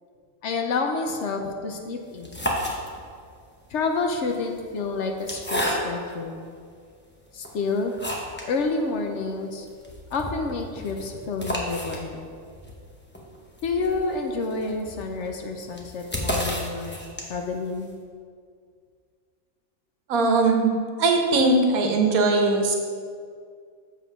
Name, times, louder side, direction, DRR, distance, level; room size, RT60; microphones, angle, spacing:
voice 1, 0.4-2.4 3.7-6.4 7.3-7.9 8.5-9.7 10.1-12.3 13.6-17.9, left 3 dB, 65° left, 4 dB, 0.9 m, -29 dB
sound 1, 2.1-3.3 4.1-6.2 6.8-6.9 7.4-8.5 8.9-9.0 9.2-9.3 9.7-17.6, left 1 dB, 10° left, 0.6 m, -32 dB
voice 2, 20.1-20.7 21.0-22.7, right 3 dB, 85° right, 3 dB, 1.3 m, -20 dB
7.2 x 3.6 x 5.8 m, 2.1 s
omnidirectional pair, 1.5 m